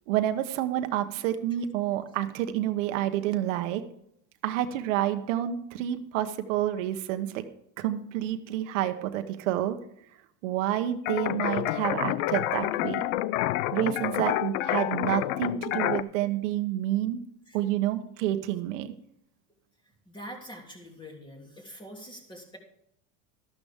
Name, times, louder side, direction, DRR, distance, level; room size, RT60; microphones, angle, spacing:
voice 1, 0.1-3.8 4.4-7.4 7.8-9.8 10.4-13.0 13.7-17.2 17.5-18.9, right 12 dB, 75° right, 8 dB, 1.1 m, -29 dB
sound 1, 11.0-16.0, left 15 dB, 85° left, 0.6 m, -28 dB
voice 2, 20.1-22.6, equal, 10° left, 1 dB, 3.0 m, -44 dB
13.0 x 11.5 x 3.6 m, 0.72 s
supercardioid pair, 130°, 37 cm